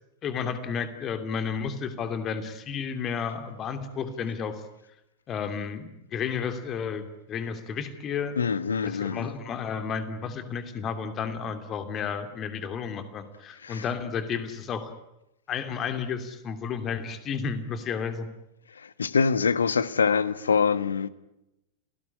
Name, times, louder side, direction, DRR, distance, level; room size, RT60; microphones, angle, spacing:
voice 1, 0.2-4.6 5.3-8.4 8.8-14.9 15.5-18.3, left 6 dB, 30° left, 2.8 m, -32 dB
voice 2, 8.4-9.3 13.6-13.8 18.7-21.1, left 5 dB, 70° left, 1.3 m, -25 dB
29.5 x 19.0 x 9.9 m
figure-of-eight pair, 90°, 0 cm